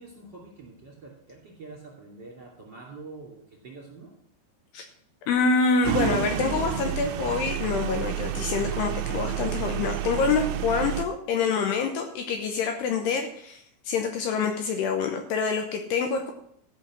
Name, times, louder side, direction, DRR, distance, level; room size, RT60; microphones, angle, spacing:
voice 1, 0.0-4.1, right 3 dB, 35° right, -3 dB, 2.1 m, -45 dB
voice 2, 5.3-16.3, left 5 dB, 85° left, 5 dB, 2.4 m, -26 dB
sound 1, 5.8-11.0, right 11 dB, 90° right, 2.4 m, -30 dB
14.0 x 6.2 x 7.5 m, 0.69 s
omnidirectional pair, 6.0 m